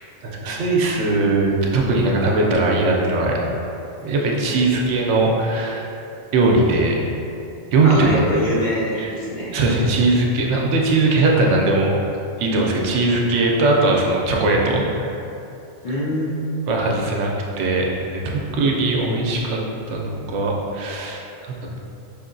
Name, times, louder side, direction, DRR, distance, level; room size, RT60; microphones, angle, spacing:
voice 1, 0.2-3.5 4.0-5.9 6.3-7.1 7.7-8.2 9.0-9.1 9.5-11.9 12.4-15.2 16.7-19.6 19.9-21.8, right 2 dB, 75° right, -1 dB, 0.9 m, -20 dB
voice 2, 7.8-9.6 15.8-16.4, equal, 55° left, -7 dB, 0.6 m, -24 dB
4.8 x 2.7 x 2.6 m, 2.7 s
omnidirectional pair, 1.2 m